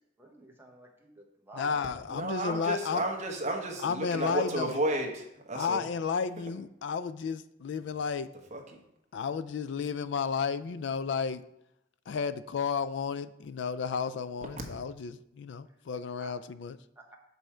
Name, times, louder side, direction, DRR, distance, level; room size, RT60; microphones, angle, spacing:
voice 1, 0.2-1.8 15.7-15.8 16.2-16.3 17.0-17.2, right 2 dB, 10° right, 0 dB, 1.0 m, -49 dB
voice 2, 1.6-3.0 3.8-4.8 5.5-8.3 9.1-11.4 12.1-16.8, left 6 dB, 60° left, 14 dB, 0.3 m, -32 dB
voice 3, 2.1-5.8 8.5-8.6, right 1 dB, 35° right, 1 dB, 1.1 m, -32 dB
6.1 x 5.4 x 4.3 m, 0.81 s
head